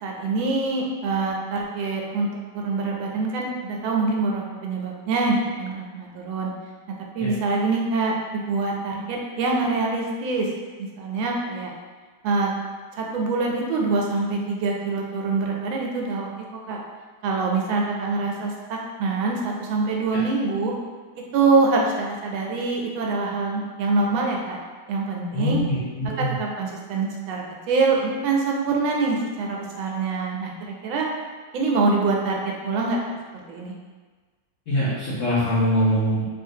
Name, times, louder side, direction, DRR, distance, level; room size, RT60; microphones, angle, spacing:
voice 1, 0.0-6.5 7.1-10.5 10.8-11.7 12.2-12.5 12.9-16.3 16.7-16.8 17.2-20.7 21.3-24.6 24.9-25.6 26.2-31.1 31.5-33.0 33.3-33.7, right 3 dB, 85° right, -1 dB, 1.4 m, -25 dB
voice 2, 25.3-26.3 34.7-36.2, equal, 60° left, -10 dB, 0.8 m, -23 dB
3.3 x 2.4 x 2.7 m, 1.4 s
omnidirectional pair, 2.1 m